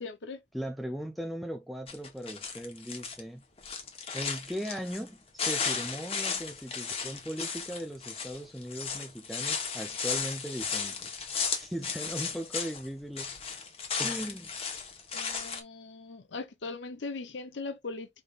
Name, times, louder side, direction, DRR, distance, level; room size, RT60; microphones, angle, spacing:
voice 1, 0.0-0.4 15.1-18.1, left 3 dB, 80° left, 0.8 m, -39 dB
voice 2, 0.5-3.4 4.1-13.3 14.0-14.5, equal, ahead, 0.4 m, -38 dB
sound 1, 1.9-3.2 3.6-5.1 5.4-12.9 13.1-15.6, left 5 dB, 30° left, 1.1 m, -35 dB
5.3 x 3.5 x 2.4 m
head